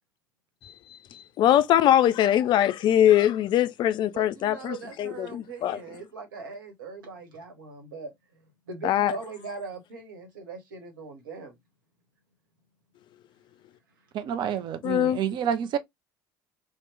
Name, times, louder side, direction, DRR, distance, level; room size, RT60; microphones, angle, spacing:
voice 1, 1.1-5.8 8.8-9.1 14.8-15.2, left 11 dB, 45° left, 0.3 m, -22 dB
voice 2, 4.1-8.1 8.7-11.5, right 4 dB, 80° right, 1.0 m, -40 dB
voice 3, 14.1-15.8, right 8 dB, 45° right, 0.5 m, -28 dB
2.9 x 2.0 x 3.2 m
hypercardioid pair, 65°, 11 cm